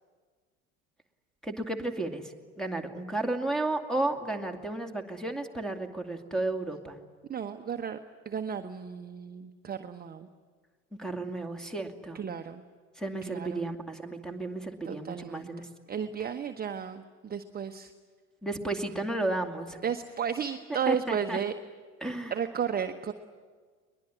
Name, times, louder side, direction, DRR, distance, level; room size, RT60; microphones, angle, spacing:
voice 1, 1.4-7.0 11.0-12.2 13.0-15.6 18.4-19.8 20.9-21.4 22.0-22.3, right 2 dB, ahead, 6 dB, 2.4 m, -33 dB
voice 2, 7.3-8.0 8.2-10.3 12.1-12.6 13.2-13.7 14.8-15.5 15.9-17.9 19.8-21.5 22.3-23.1, right 7 dB, 20° right, 7 dB, 1.0 m, -33 dB
22.0 x 20.5 x 9.8 m, 1.5 s
figure-of-eight pair, 70°, 43 cm